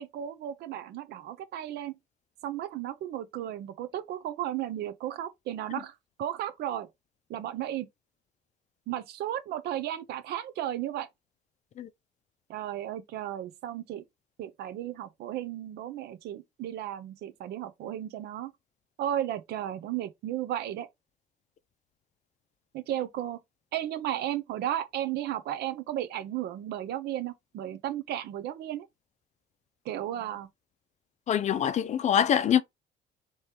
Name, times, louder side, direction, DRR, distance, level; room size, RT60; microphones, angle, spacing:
voice 1, 0.0-2.0 2.4-6.9 7.3-7.9 8.9-11.1 12.5-14.0 14.4-18.5 19.0-20.9 22.7-23.4 23.7-28.9 29.8-30.5, right 12 dB, 75° right, 0.7 m, -34 dB
voice 2, 31.3-32.6, left 9 dB, 45° left, 0.5 m, -24 dB
3.4 x 3.1 x 4.3 m
cardioid pair, 110°, 17 cm